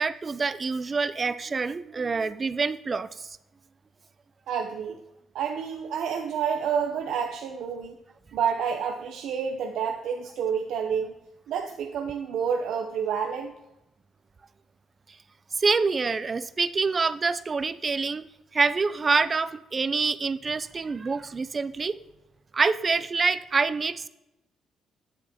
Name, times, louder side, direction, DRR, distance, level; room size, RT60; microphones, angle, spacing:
voice 1, 0.0-3.4 15.6-18.3 18.5-22.0 22.5-24.1, right 4 dB, 35° right, 14 dB, 0.3 m, -26 dB
voice 2, 4.5-5.0 5.3-8.0 8.3-11.1 11.5-13.5, right 7 dB, 80° right, 4 dB, 0.6 m, -29 dB
7.8 x 7.3 x 2.8 m, 0.91 s
cardioid pair, 90°, 0 cm